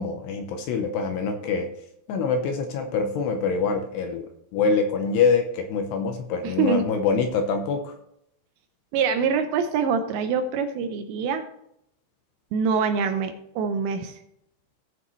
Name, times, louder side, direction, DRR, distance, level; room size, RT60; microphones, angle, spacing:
voice 1, 0.0-1.7 2.1-4.3 4.5-7.9, left 5 dB, 75° left, 5 dB, 2.7 m, -25 dB
voice 2, 6.4-6.9 8.9-11.5 12.5-14.1, right 6 dB, 80° right, 7 dB, 2.8 m, -25 dB
16.5 x 6.5 x 3.1 m, 0.75 s
omnidirectional pair, 5.5 m